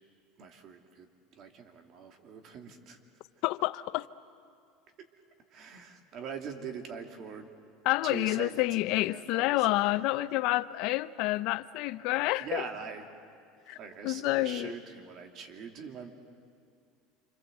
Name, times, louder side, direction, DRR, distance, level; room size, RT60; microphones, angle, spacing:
voice 1, 0.4-3.0 5.5-7.5 8.0-9.9 12.4-13.1 13.7-16.1, right 5 dB, 45° right, 2.7 m, -43 dB
voice 2, 3.4-4.1 7.9-12.6 13.7-13.8 14.0-14.7, left 18 dB, 60° left, 0.6 m, -28 dB
27.5 x 26.0 x 8.0 m
supercardioid pair, 130°, 0 cm